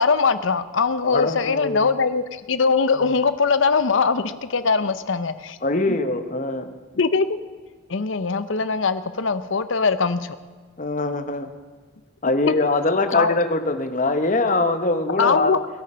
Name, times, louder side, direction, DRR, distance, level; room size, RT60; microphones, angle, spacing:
voice 1, 0.0-5.6 5.9-6.0 6.9-7.4 7.9-10.4 12.5-12.6 13.1-13.3 15.2-15.6, left 4 dB, 65° left, 13 dB, 0.7 m, -21 dB
voice 2, 1.0-1.9 5.6-6.7 10.8-11.5 12.2-15.6, left 2 dB, 35° left, 9 dB, 1.0 m, -23 dB
21.5 x 9.1 x 5.6 m, 1.5 s
head